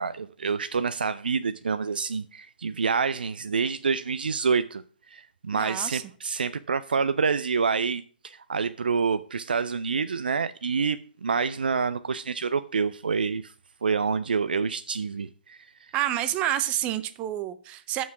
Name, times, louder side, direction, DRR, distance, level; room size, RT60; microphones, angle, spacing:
voice 1, 0.0-4.8 5.1-13.5 13.8-15.6, right 5 dB, 65° right, 0.4 m, -27 dB
voice 2, 5.5-6.0 15.9-18.0, right 12 dB, 20° right, 0.6 m, -28 dB
7.2 x 6.1 x 5.8 m
figure-of-eight pair, 130°, 5 cm